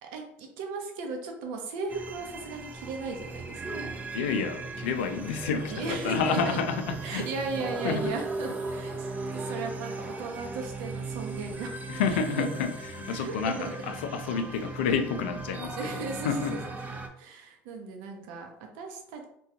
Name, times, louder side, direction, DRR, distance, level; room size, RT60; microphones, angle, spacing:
voice 1, 0.0-3.9 5.7-6.6 7.0-11.8 12.0-12.6 13.1-13.7 15.8-16.6 17.2-19.3, right 4 dB, 80° right, 3 dB, 0.6 m, -36 dB
sound 1, 1.9-17.1, right 3 dB, 25° right, 0.5 m, -37 dB
voice 2, 4.1-7.3 7.8-8.2 11.9-16.6, left 6 dB, 90° left, 7 dB, 0.4 m, -30 dB
3.4 x 2.3 x 2.7 m, 0.72 s
supercardioid pair, 85°, 6 cm